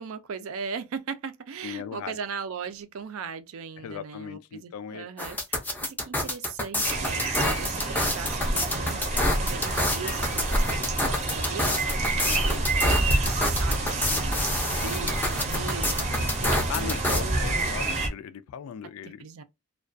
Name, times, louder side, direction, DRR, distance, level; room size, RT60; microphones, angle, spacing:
voice 1, 0.0-17.7 19.0-19.4, right 6 dB, 75° right, 0.4 m, -39 dB
voice 2, 1.6-2.2 3.8-5.1 12.2-12.5 16.7-19.2, left 8 dB, 80° left, 0.3 m, -38 dB
sound 1, 5.2-17.2, left 1 dB, 10° left, 0.4 m, -28 dB
sound 2, 6.8-18.1, right 2 dB, 35° right, 0.6 m, -28 dB
2.3 x 2.2 x 2.5 m
head